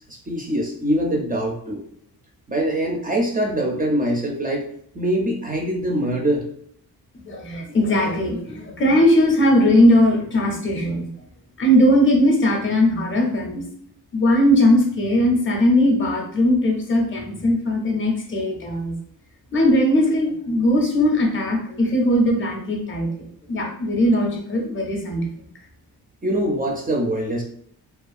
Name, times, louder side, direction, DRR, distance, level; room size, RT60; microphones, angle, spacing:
voice 1, 0.3-1.8 2.5-4.7 4.9-6.5 26.2-27.4, right 1 dB, 25° right, -1 dB, 0.4 m, -23 dB
voice 2, 7.3-11.1 11.6-13.6 14.1-18.9 19.5-25.3, left 1 dB, 35° left, 1 dB, 0.5 m, -19 dB
2.4 x 2.2 x 2.4 m, 0.65 s
wide cardioid pair, 140°, 37 cm